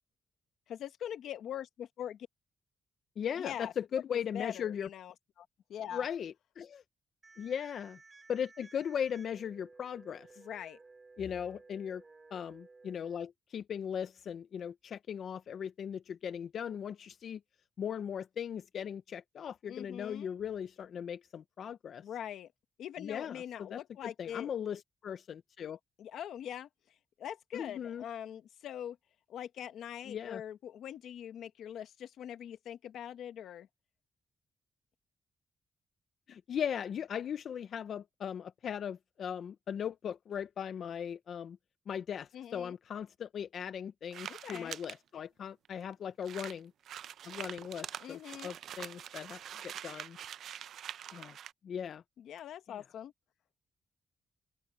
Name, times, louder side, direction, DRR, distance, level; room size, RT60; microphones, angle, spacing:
voice 1, 0.7-2.3 3.4-3.7 4.1-6.0 10.4-10.8 19.7-20.4 22.0-22.5 22.8-24.5 26.0-26.7 27.2-29.0 29.3-33.7 42.3-42.8 44.3-44.7 48.0-48.6 52.2-53.1, left 10 dB, 85° left, 1.3 m, -43 dB
voice 2, 3.2-4.9 5.9-6.8 7.4-8.0 8.3-10.4 11.2-12.0 12.3-17.4 17.8-22.0 23.0-25.8 27.5-28.0 30.1-30.4 36.3-41.6 41.9-46.7 47.3-50.2 51.1-51.4 51.6-52.0 52.7-52.8, left 8 dB, 55° left, 0.5 m, -38 dB
sound 1, 7.2-13.2, right 3 dB, 25° right, 3.8 m, -57 dB
sound 2, 44.1-45.0 45.7-45.8 45.9-46.0 46.2-51.5, right 10 dB, 70° right, 0.5 m, -45 dB
open air
wide cardioid pair, 165°, 0 cm